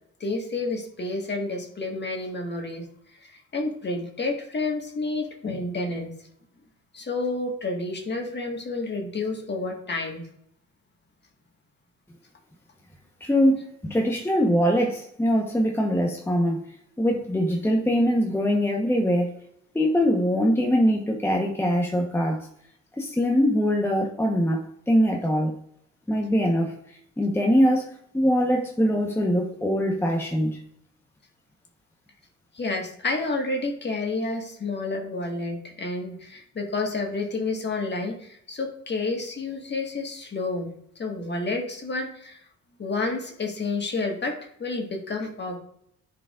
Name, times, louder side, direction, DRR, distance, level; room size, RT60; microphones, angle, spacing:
voice 1, 0.2-2.8 3.2-6.1 6.9-10.2 32.5-42.4 42.8-45.6, left 3 dB, 35° left, 2 dB, 1.6 m, -30 dB
voice 2, 13.2-16.6 17.0-19.3 19.7-22.5 23.0-25.5 26.1-26.7 27.2-30.6, equal, 10° left, 0 dB, 1.0 m, -22 dB
10.5 x 4.9 x 2.5 m, 0.70 s
cardioid pair, 90°, 30 cm